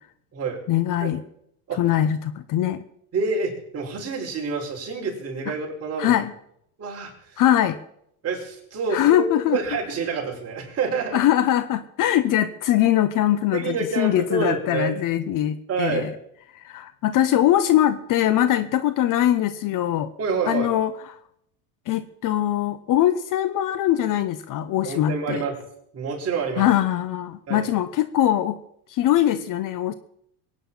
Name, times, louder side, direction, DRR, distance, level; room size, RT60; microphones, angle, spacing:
voice 1, 0.7-1.2 1.8-2.8 6.0-6.3 7.4-7.8 8.9-9.6 11.1-16.1 16.5-20.1 20.5-20.9 21.9-25.4 26.6-28.6 28.9-29.9, left 12 dB, 45° left, 13 dB, 1.0 m, -22 dB
voice 2, 3.1-6.2 6.8-7.4 8.2-11.2 13.5-15.0 15.7-16.1 20.2-20.7 24.8-25.6 25.9-26.7 27.5-27.7, right 5 dB, 35° right, 0 dB, 5.2 m, -28 dB
23.0 x 9.6 x 5.7 m, 0.74 s
supercardioid pair, 125°, 44 cm